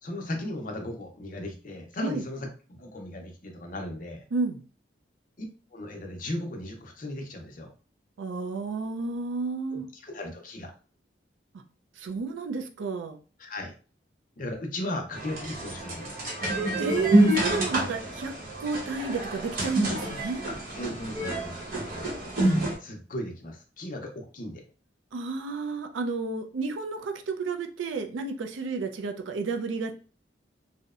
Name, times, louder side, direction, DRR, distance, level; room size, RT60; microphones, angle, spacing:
voice 1, 0.0-4.2 5.4-5.5 5.7-7.7 9.7-10.7 13.4-13.7 14.4-16.2 20.5-21.6 21.8-22.1 22.8-24.6, left 1 dB, 45° left, 3 dB, 0.5 m, -36 dB
voice 2, 4.3-4.6 8.2-9.9 12.0-13.2 16.8-18.3 18.6-20.4 25.1-30.0, right 4 dB, 85° right, 6 dB, 0.4 m, -31 dB
sound 1, 15.1-22.7, right 1 dB, 50° right, 0.8 m, -27 dB
2.7 x 2.0 x 2.4 m, 0.37 s
head